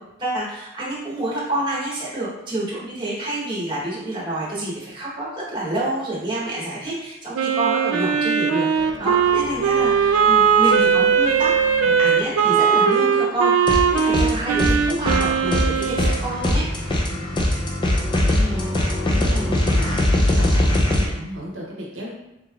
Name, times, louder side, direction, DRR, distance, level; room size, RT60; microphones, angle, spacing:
voice 1, 0.2-11.5 11.8-16.6, right 1 dB, 20° right, -6 dB, 1.0 m, -28 dB
Wind instrument woodwind instrument, 7.3-16.2, right 7 dB, 80° right, 0.3 m, -19 dB
sound 1, 8.7-20.4, left 2 dB, 85° left, 1.3 m, -39 dB
sound 2, 13.7-14.3 14.6-21.1, left 1 dB, 20° left, 0.4 m, -21 dB
voice 2, 18.0-20.0 20.3-22.1, equal, 65° right, -3 dB, 0.8 m, -33 dB
3.8 x 3.1 x 2.3 m, 0.89 s
head